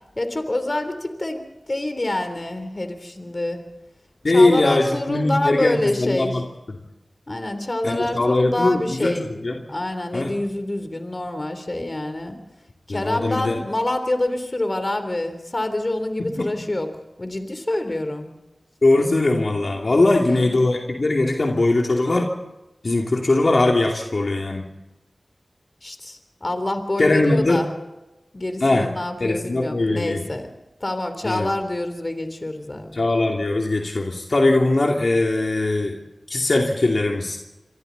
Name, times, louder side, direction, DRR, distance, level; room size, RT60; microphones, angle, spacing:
voice 1, 0.2-3.6 4.3-6.4 7.3-9.3 9.7-12.4 12.9-16.9 17.2-18.3 19.9-20.6 25.8-27.7 28.3-30.5 30.8-33.0, left 1 dB, 40° left, 8 dB, 3.4 m, -26 dB
voice 2, 4.2-6.4 7.8-9.1 9.4-9.6 10.1-10.3 12.9-13.6 16.2-16.5 18.8-22.3 22.8-24.7 27.0-27.6 28.6-28.9 29.2-30.2 31.2-31.5 32.9-36.0 36.3-37.4, left 2 dB, 65° left, 0 dB, 2.6 m, -20 dB
27.5 x 24.0 x 4.1 m, 1.0 s
wide cardioid pair, 50°, 0 cm